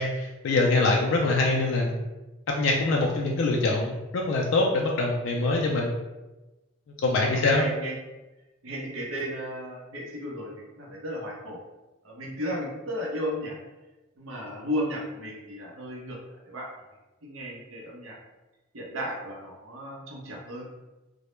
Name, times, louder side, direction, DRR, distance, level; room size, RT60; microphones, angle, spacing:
voice 1, 0.0-1.9 2.5-5.9 7.0-7.6, left 2 dB, 70° left, -1 dB, 0.3 m, -24 dB
voice 2, 7.2-8.0 8.6-11.6 12.0-13.6 14.2-16.2 16.5-16.7 17.2-18.2 18.7-20.7, equal, 85° right, -2 dB, 0.6 m, -34 dB
2.1 x 2.0 x 3.0 m, 1.1 s
head